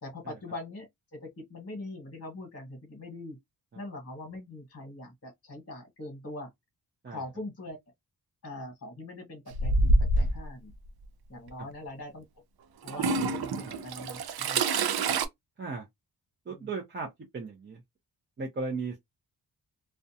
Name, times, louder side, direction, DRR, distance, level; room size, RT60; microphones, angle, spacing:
voice 1, 0.0-3.4 3.7-6.5 7.1-7.8 8.4-10.7 11.3-12.2 12.8-14.6 16.5-16.7, left 2 dB, 40° left, 1.1 m, -42 dB
Toilet flush / Trickle dribble, 9.5-10.4 11.5-11.6 12.9-15.3, right 2 dB, 75° right, 0.5 m, -26 dB
voice 2, 16.5-17.1 17.3-17.8 18.4-19.0, right 4 dB, 30° right, 0.6 m, -35 dB
2.4 x 2.2 x 2.6 m
wide cardioid pair, 165°, 38 cm